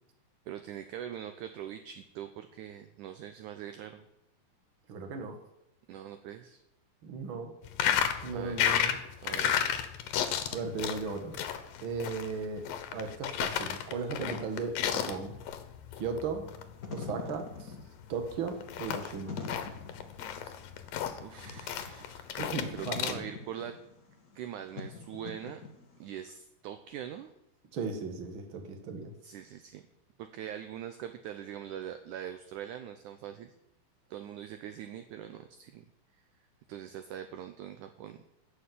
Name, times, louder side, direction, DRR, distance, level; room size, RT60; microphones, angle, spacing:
voice 1, 0.5-4.1 5.9-6.6 8.3-8.6 9.2-9.7 21.2-22.3 22.7-23.8 24.4-25.6 26.0-27.3 29.2-29.8 30.2-33.5 34.1-35.8 36.7-38.2, right 10 dB, 75° right, 8 dB, 2.0 m, -42 dB
voice 2, 4.9-5.3 7.0-7.5 8.2-8.9 10.5-11.4 11.8-12.6 12.9-15.3 16.0-16.5 16.9-17.7 18.1-19.4 22.4-23.3 27.7-29.1, right 4 dB, 45° right, 4 dB, 1.9 m, -36 dB
sound 1, 7.6-23.2, left 9 dB, 75° left, 2.7 m, -33 dB
Wind / Fire, 16.6-26.1, left 5 dB, 45° left, 1.1 m, -44 dB
14.0 x 7.0 x 9.4 m, 0.84 s
omnidirectional pair, 4.1 m